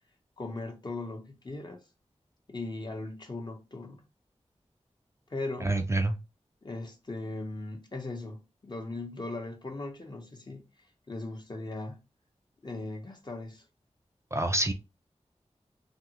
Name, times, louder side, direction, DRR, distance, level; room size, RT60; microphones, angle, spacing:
voice 1, 0.4-1.8 2.5-4.0 5.3-5.8 6.6-10.7 11.1-12.0 12.6-13.6, left 2 dB, 40° left, 0.7 m, -38 dB
voice 2, 5.6-6.2 14.3-14.7, right 2 dB, 25° right, 0.4 m, -27 dB
3.4 x 2.0 x 2.8 m
wide cardioid pair, 55°, 12 cm